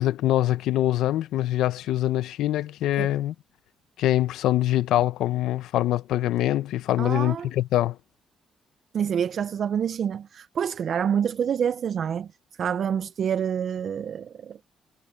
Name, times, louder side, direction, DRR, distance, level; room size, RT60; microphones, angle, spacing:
voice 1, 0.0-3.3 4.0-8.0, left 13 dB, 85° left, 0.8 m, -24 dB
voice 2, 7.0-7.5 8.9-12.3 12.6-14.6, right 8 dB, 60° right, 0.5 m, -27 dB
cardioid pair, 90°, 0 cm